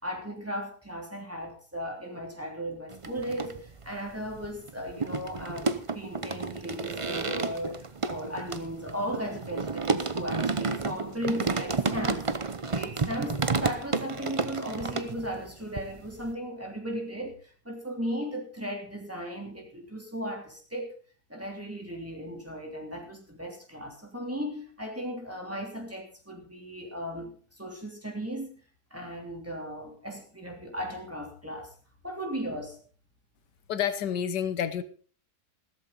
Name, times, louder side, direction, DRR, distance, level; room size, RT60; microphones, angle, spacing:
voice 1, 0.0-12.3 12.7-21.0 21.3-28.6 28.9-31.7 32.0-32.8, equal, 10° right, 1 dB, 3.2 m, -36 dB
sound 1, 2.9-3.9 4.2-15.5 15.8-16.3, right 4 dB, 35° right, 0.5 m, -31 dB
voice 2, 33.7-34.8, left 8 dB, 90° left, 12 dB, 1.7 m, -29 dB
15.5 x 13.5 x 4.0 m, 0.40 s
omnidirectional pair, 1.8 m